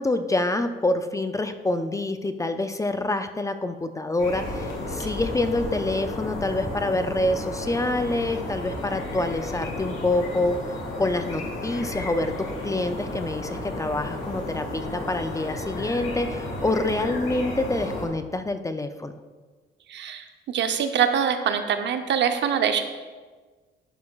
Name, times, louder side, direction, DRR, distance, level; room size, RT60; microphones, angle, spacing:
voice 1, 0.0-10.6 11.0-19.1, left 2 dB, 15° left, 9 dB, 0.4 m, -26 dB
sound 1, 4.2-18.1, left 2 dB, 85° left, 1.8 m, -33 dB
voice 2, 19.9-22.8, right 8 dB, 65° right, 7 dB, 0.7 m, -24 dB
11.0 x 6.5 x 2.3 m, 1.4 s
cardioid pair, 90°, 20 cm